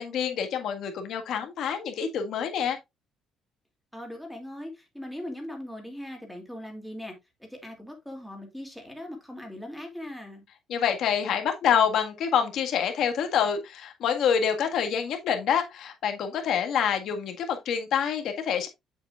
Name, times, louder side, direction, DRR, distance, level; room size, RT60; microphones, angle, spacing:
voice 1, 0.0-2.8 10.7-18.7, left 8 dB, 65° left, 1.7 m, -26 dB
voice 2, 3.9-7.1 7.4-10.4, left 1 dB, ahead, 2.5 m, -40 dB
7.8 x 7.3 x 2.4 m
cardioid pair, 135°, 0 cm